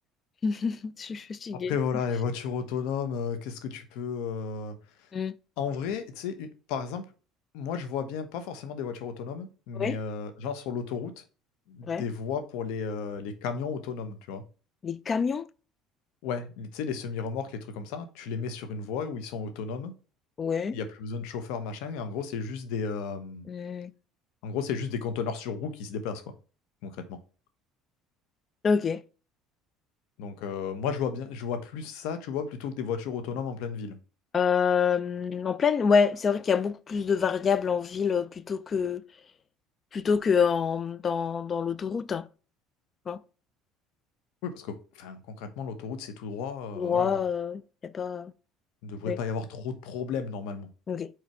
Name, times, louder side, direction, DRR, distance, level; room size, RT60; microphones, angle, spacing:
voice 1, 0.4-1.7 5.1-5.3 9.7-10.0 11.9-12.0 14.8-15.5 20.4-20.8 23.5-23.9 28.6-29.0 34.3-39.0 39.9-42.3 43.1-43.2 46.8-48.3 49.0-49.2 50.9-51.1, left 6 dB, 35° left, 0.5 m, -27 dB
voice 2, 1.7-4.7 5.6-7.0 7.5-11.2 11.7-14.4 16.2-19.9 20.7-23.5 24.4-26.3 26.8-27.2 30.2-34.0 44.4-47.2 48.8-50.7, left 6 dB, 75° left, 1.1 m, -33 dB
4.8 x 4.5 x 4.6 m
supercardioid pair, 105°, 0 cm